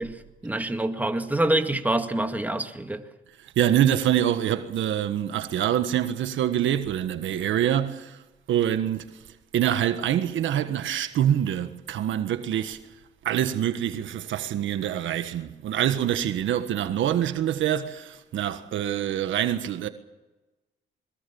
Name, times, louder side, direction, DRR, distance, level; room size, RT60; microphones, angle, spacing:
voice 1, 0.0-3.0, right 1 dB, 10° right, 2.0 m, -26 dB
voice 2, 3.4-8.2 8.5-9.2 9.5-12.8 13.2-19.9, right 10 dB, 75° right, 1.5 m, -25 dB
22.0 x 21.5 x 7.0 m
cardioid pair, 90°, 20 cm